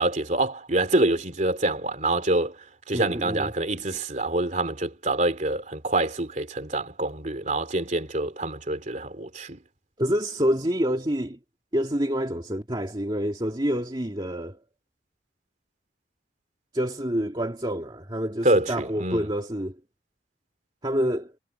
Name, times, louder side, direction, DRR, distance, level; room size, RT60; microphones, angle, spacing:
voice 1, 0.0-2.6 2.9-9.6 18.4-19.3, right 2 dB, 40° right, 3.2 m, -26 dB
voice 2, 2.9-3.5 10.0-11.4 11.7-14.6 16.7-19.8 20.8-21.3, equal, 25° right, 2.1 m, -27 dB
head